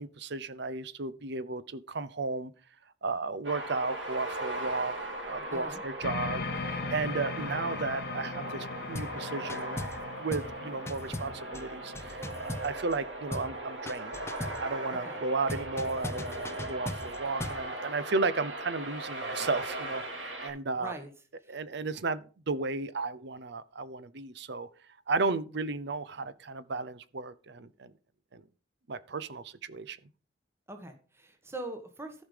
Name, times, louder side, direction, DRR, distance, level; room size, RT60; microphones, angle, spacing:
voice 1, 0.0-2.5 3.0-5.0 5.2-9.8 10.2-14.2 14.6-20.9 21.5-24.7 25.1-27.9 28.3-28.4 28.9-30.0, right 3 dB, 70° right, 0.8 m, -34 dB
sound 1, 3.4-20.5, right 1 dB, 85° right, 3.5 m, -38 dB
voice 2, 5.5-5.8 14.9-15.2 20.7-21.1 21.4-21.6 30.7-32.2, right 1 dB, 15° right, 1.3 m, -42 dB
sound 2, 6.0-12.6, left 5 dB, 60° left, 0.7 m, -39 dB
sound 3, 8.9-9.2 9.5-10.0 10.3-10.6 10.9-13.0 13.3-13.6 13.9-14.7 15.5-17.7, left 1 dB, 15° left, 0.7 m, -39 dB
14.0 x 5.4 x 5.0 m
head